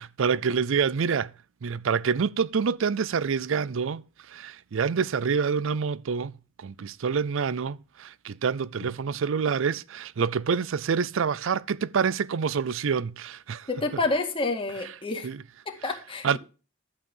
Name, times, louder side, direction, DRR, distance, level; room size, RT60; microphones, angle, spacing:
voice 1, 0.0-1.3 1.6-6.3 6.6-13.7 15.2-15.4 15.8-15.9 16.2-16.4, right 6 dB, 70° right, 0.5 m, -27 dB
voice 2, 13.7-15.3 15.7-16.4, left 3 dB, 25° left, 2.1 m, -29 dB
11.5 x 8.0 x 5.4 m
head